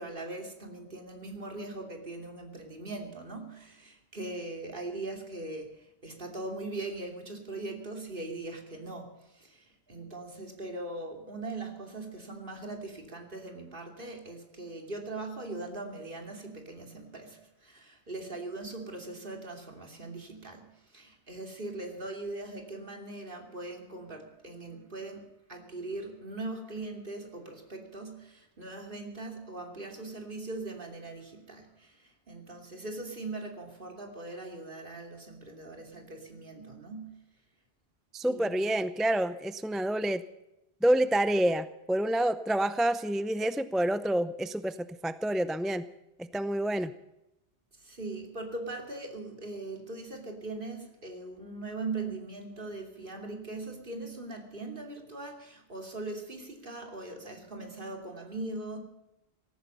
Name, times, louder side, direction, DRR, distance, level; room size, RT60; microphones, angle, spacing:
voice 1, 0.0-9.1 9.3-20.7 20.9-37.2 38.2-38.6 47.8-58.8, right 2 dB, 55° right, 3 dB, 3.1 m, -40 dB
voice 2, 38.1-40.2 40.8-45.8 46.2-46.9, right 1 dB, ahead, 13 dB, 0.5 m, -28 dB
18.0 x 14.5 x 5.5 m, 0.92 s
omnidirectional pair, 1.1 m